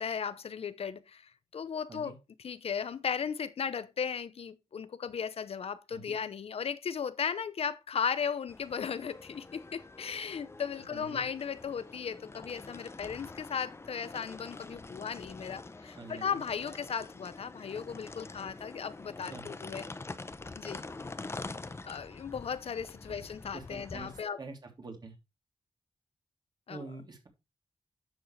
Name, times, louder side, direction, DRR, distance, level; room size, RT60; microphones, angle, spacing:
voice 1, 0.0-19.9 20.6-20.8 21.8-24.4 26.7-26.9, left 7 dB, 80° left, 0.7 m, -36 dB
sound 1, 8.5-24.2, left 3 dB, 25° left, 0.7 m, -46 dB
voice 2, 10.9-11.3 16.0-16.4 19.2-19.5 23.1-23.2 23.5-24.1 24.4-25.1 26.7-27.3, right 3 dB, 45° right, 3.1 m, -46 dB
10.5 x 7.3 x 3.2 m
wide cardioid pair, 170°, 10 cm